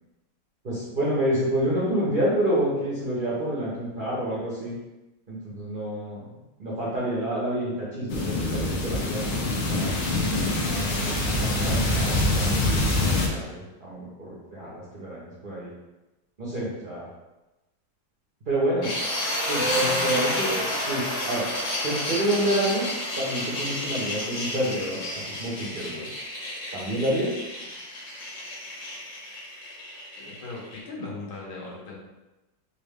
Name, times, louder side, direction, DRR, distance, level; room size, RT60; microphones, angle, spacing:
voice 1, 0.6-4.7 5.3-6.2 6.6-9.9 10.6-15.7 16.4-17.1 18.5-18.9 19.5-21.4 21.8-22.8 23.2-26.1 26.7-27.3, right 1 dB, 90° right, -8 dB, 0.4 m, -28 dB
sound 1, 8.1-13.3, left 2 dB, 70° left, 1.3 m, -25 dB
sound 2, 18.8-30.8, left 1 dB, 45° left, 1.0 m, -30 dB
voice 2, 30.2-32.0, left 3 dB, 85° left, -4 dB, 1.7 m, -38 dB
4.0 x 2.1 x 3.4 m, 1.0 s
omnidirectional pair, 2.2 m